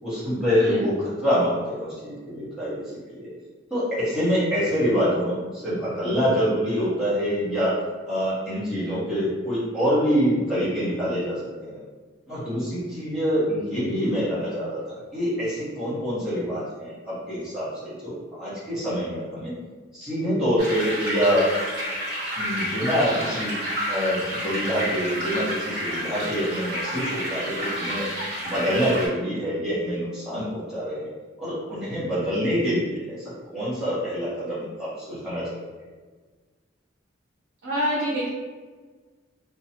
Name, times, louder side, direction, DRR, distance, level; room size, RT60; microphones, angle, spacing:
voice 1, 0.0-0.9 1.2-3.3 3.7-7.7 8.1-11.8 12.3-19.5 19.9-21.6 22.4-23.5 23.9-28.1 28.4-31.1 31.4-33.2 33.4-35.6, equal, 5° right, -12 dB, 1.0 m, -26 dB
sound 1, 20.6-29.1, equal, 60° right, 1.2 m, -30 dB
voice 2, 37.6-38.3, equal, 85° right, -6 dB, 0.6 m, -26 dB
2.7 x 2.3 x 2.8 m, 1.4 s
head